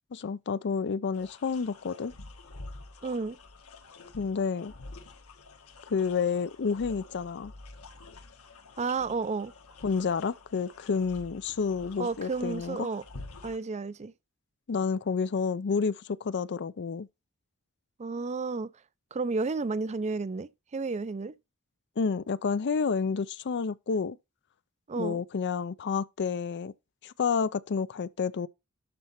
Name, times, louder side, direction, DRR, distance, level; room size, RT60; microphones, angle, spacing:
voice 1, 0.1-2.1 4.2-4.7 5.9-7.5 9.8-12.8 14.7-17.1 22.0-24.2 25.0-26.7 27.0-28.5, left 5 dB, 50° left, 0.5 m, -30 dB
sound 1, 1.1-13.6, left 3 dB, 75° left, 1.6 m, -48 dB
voice 2, 3.0-3.4 8.8-9.5 12.0-13.0 13.4-14.1 18.0-18.7 19.1-21.3 24.9-25.2, right 4 dB, 30° right, 0.5 m, -32 dB
12.0 x 4.1 x 5.7 m
head